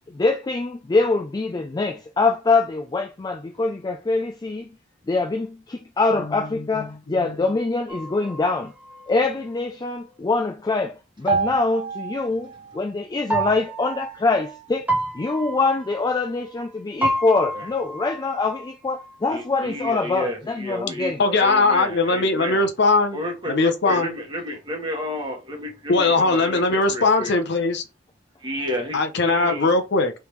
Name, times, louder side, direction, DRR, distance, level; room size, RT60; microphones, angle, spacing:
voice 1, 0.1-4.7 5.1-8.7 9.1-14.9 15.1-21.2, left 3 dB, 20° left, 0.3 m, -24 dB
voice 2, 6.6-7.3 21.2-23.2 23.5-24.1 25.9-27.8 28.9-30.1, left 3 dB, 65° left, 0.7 m, -20 dB
sound 1, 7.9-9.6 11.3-12.9 13.3-16.7 17.0-19.1, right 2 dB, 10° right, 1.0 m, -29 dB
voice 3, 19.3-22.6 23.1-27.4 28.4-29.8, equal, 25° right, 1.4 m, -31 dB
5.0 x 3.3 x 3.1 m
head